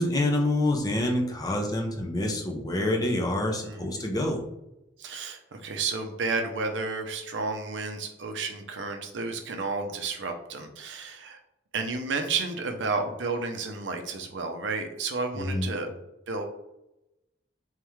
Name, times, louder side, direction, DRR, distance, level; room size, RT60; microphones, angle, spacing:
voice 1, 0.0-4.4 15.3-15.7, left 1 dB, 20° left, 1 dB, 0.6 m, -27 dB
voice 2, 3.6-4.1 5.0-11.4 11.7-15.9 16.3-16.4, right 4 dB, 70° right, 5 dB, 0.6 m, -32 dB
3.6 x 3.4 x 3.1 m, 0.89 s
head